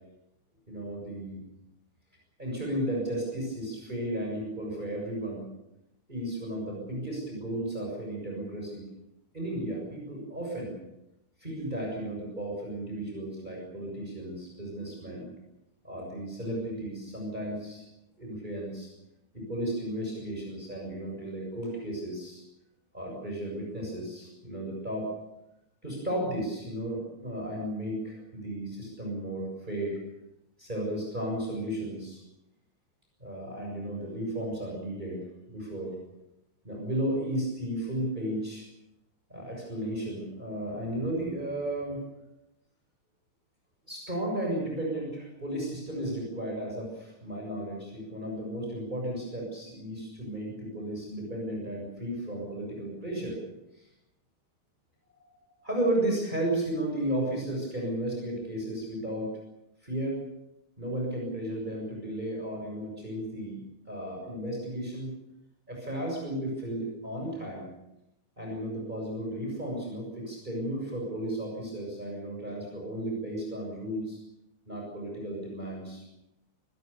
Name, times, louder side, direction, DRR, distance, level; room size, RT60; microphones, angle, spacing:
voice 1, 0.7-1.4 2.4-5.5 6.1-8.8 9.3-10.7 11.4-15.3 15.8-17.8 18.2-18.9 19.3-22.4 22.9-25.1 25.8-30.0 30.6-32.2 33.2-35.2 35.5-35.9 36.6-38.7 39.3-42.0 43.9-53.4 53.8-53.9 55.2-59.3 59.8-60.2 60.8-63.6 63.9-65.1 65.7-67.7 68.4-74.2 74.7-76.0, right 1 dB, 20° right, -1 dB, 7.2 m, -34 dB
24.0 x 20.5 x 7.0 m, 0.88 s
omnidirectional pair, 2.3 m